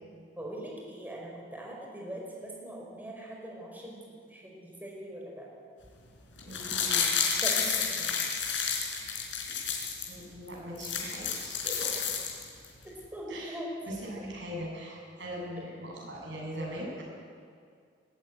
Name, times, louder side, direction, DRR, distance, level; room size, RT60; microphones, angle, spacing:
voice 1, 0.4-4.0 4.3-5.5 7.4-8.1 13.1-13.9 15.7-15.9, right 1 dB, 10° right, -2 dB, 5.0 m, -41 dB
sound 1, 6.4-10.1 10.5-10.6 10.7-12.6 13.0-13.1, left 6 dB, 80° left, 4.6 m, -30 dB
voice 2, 6.4-7.1 10.1-11.9 13.3-17.0, equal, 75° right, -2 dB, 7.4 m, -40 dB
21.0 x 13.5 x 9.6 m, 2.2 s
head